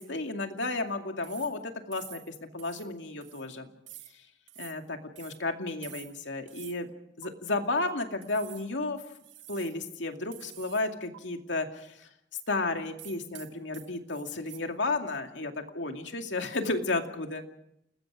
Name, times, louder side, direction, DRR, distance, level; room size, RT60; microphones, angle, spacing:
voice 1, 0.0-3.7 4.6-6.9 7.2-9.0 9.5-12.1 12.5-17.4, left 2 dB, 85° left, 5 dB, 2.4 m, -33 dB
sound 1, 1.2-1.6 1.9-2.3 2.6-2.9 3.2-3.5 3.9-4.1 4.5-4.8 5.2-5.4 5.8-6.2 6.5-6.8 7.2-7.3 8.2-8.7 9.1-9.8 10.3-10.9 11.1-11.2 13.0-14.6, right 14 dB, 75° right, 1.5 m, -48 dB
29.5 x 20.0 x 5.0 m, 0.78 s
head